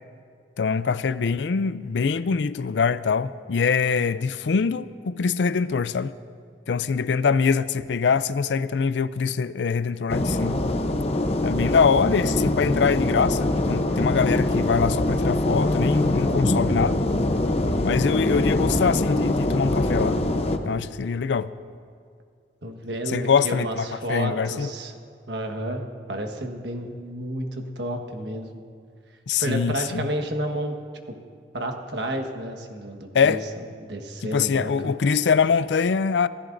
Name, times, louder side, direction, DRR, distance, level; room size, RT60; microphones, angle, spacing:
voice 1, 0.6-6.1 6.7-10.6 11.4-17.0 17.8-20.2 20.6-21.5 23.1-24.7 29.3-30.1 33.1-33.4 34.3-36.3, left 5 dB, 85° left, 0.4 m, -23 dB
sound 1, 10.1-20.6, left 1 dB, 35° left, 0.8 m, -23 dB
voice 2, 22.6-24.9 25.3-28.6 29.4-30.7 31.1-31.2 31.5-33.4 33.8-35.0, right 1 dB, 85° right, 1.4 m, -31 dB
25.5 x 16.0 x 2.6 m
head